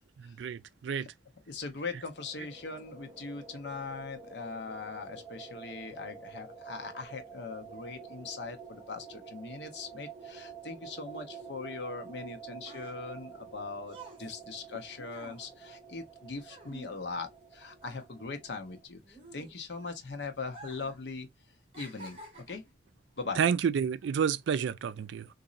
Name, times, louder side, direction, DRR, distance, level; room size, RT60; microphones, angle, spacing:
voice 1, 0.2-1.1 23.4-25.3, right 7 dB, 80° right, 0.3 m, -30 dB
voice 2, 1.5-21.3 21.7-22.2 22.5-22.6 23.2-23.4, left 4 dB, 70° left, 0.8 m, -40 dB
sound 1, 2.0-18.9, right 6 dB, 15° right, 0.9 m, -49 dB
sound 2, 12.4-17.5 17.8-19.9 20.4-21.0 21.3-22.8 23.5-23.7, right 3 dB, 30° right, 1.6 m, -51 dB
4.0 x 2.6 x 2.4 m
head